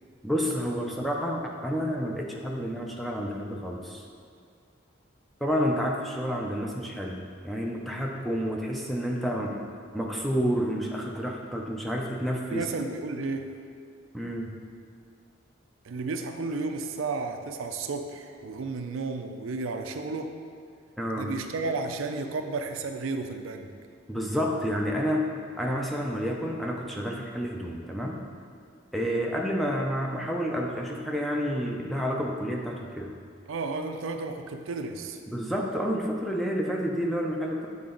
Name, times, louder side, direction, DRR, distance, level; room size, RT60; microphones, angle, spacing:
voice 1, 0.2-4.0 5.4-7.2 7.4-9.6 9.9-12.7 14.1-14.5 21.0-21.3 24.1-25.3 25.6-28.2 28.9-33.1 35.3-37.7, equal, ahead, -1 dB, 0.5 m, -29 dB
voice 2, 12.5-13.5 15.8-20.3 21.2-23.7 33.5-35.2, right 3 dB, 85° right, 6 dB, 0.4 m, -33 dB
7.5 x 3.9 x 3.8 m, 2.3 s
head